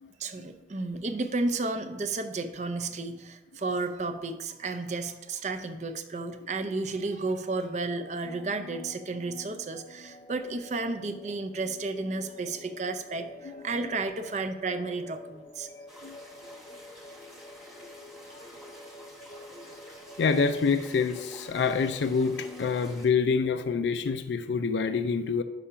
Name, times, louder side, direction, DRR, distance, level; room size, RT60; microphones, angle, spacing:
voice 1, 0.2-15.7, right 3 dB, 40° right, 8 dB, 0.5 m, -32 dB
sound 1, 8.2-23.6, left 1 dB, 30° left, 0.6 m, -48 dB
sound 2, 15.9-23.1, equal, ahead, 1.1 m, -49 dB
voice 2, 20.2-25.4, left 5 dB, 90° left, 10 dB, 0.4 m, -26 dB
5.8 x 5.6 x 4.9 m, 1.1 s
head